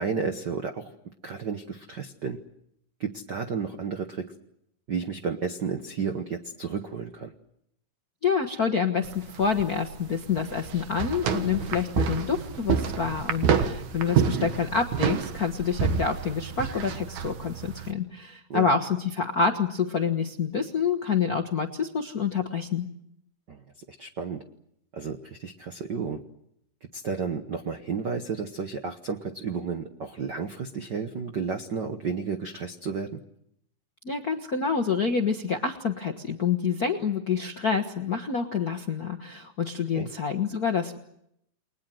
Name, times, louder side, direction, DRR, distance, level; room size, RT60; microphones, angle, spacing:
voice 1, 0.0-2.4 3.0-4.3 4.9-7.3 14.4-14.5 18.5-18.7 23.5-23.6 24.0-24.4 24.9-26.2 26.9-33.2 39.9-40.1, right 5 dB, 85° right, 7 dB, 0.9 m, -32 dB
voice 2, 8.2-22.9 34.0-41.0, left 6 dB, 65° left, 4 dB, 0.9 m, -27 dB
sound 1, 9.0-17.9, right 7 dB, 65° right, 2.7 m, -28 dB
29.5 x 21.5 x 7.7 m, 0.78 s
omnidirectional pair, 3.9 m